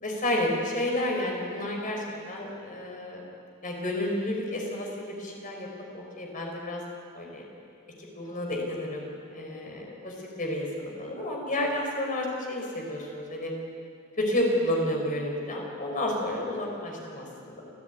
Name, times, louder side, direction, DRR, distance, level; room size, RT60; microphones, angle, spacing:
voice 1, 0.0-3.2 3.6-6.8 7.1-7.4 8.1-13.5 14.2-17.6, left 1 dB, 40° left, 0 dB, 5.2 m, -31 dB
27.0 x 16.0 x 9.4 m, 2.4 s
head